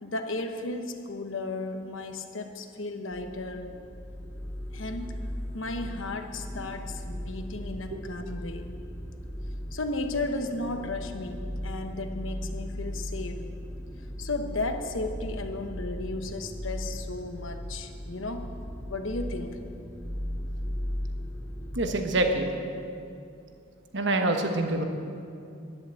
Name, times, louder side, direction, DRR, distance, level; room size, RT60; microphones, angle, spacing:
voice 1, 0.0-3.7 4.7-5.2 5.5-8.7 9.7-13.4 14.2-18.5 18.9-19.6, left 2 dB, 70° left, 6 dB, 1.1 m, -34 dB
sound 1, 3.1-22.3, equal, 10° left, 0.7 m, -37 dB
voice 2, 21.7-22.5 23.9-24.8, right 2 dB, 55° right, 4 dB, 1.3 m, -26 dB
11.5 x 10.5 x 7.7 m, 2.5 s
head